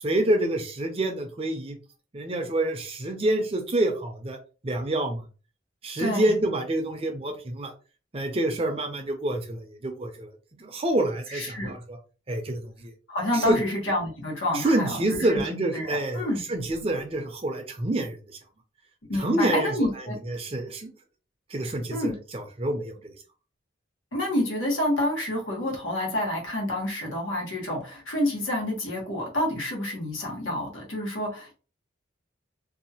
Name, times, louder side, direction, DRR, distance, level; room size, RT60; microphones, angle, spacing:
voice 1, 0.0-1.8 2.1-4.4 4.6-5.2 5.8-7.7 8.1-10.3 10.6-12.0 12.3-12.9 13.3-13.6 14.5-18.2 19.2-19.7 20.3-20.9 21.5-23.1, right 1 dB, 30° right, 4 dB, 0.5 m, -27 dB
voice 2, 6.0-6.3 11.3-11.7 13.1-15.3 15.7-16.4 19.1-20.1 21.9-22.1 24.1-31.5, left 1 dB, 85° left, -1 dB, 1.3 m, -28 dB
2.7 x 2.4 x 2.7 m, 0.35 s
head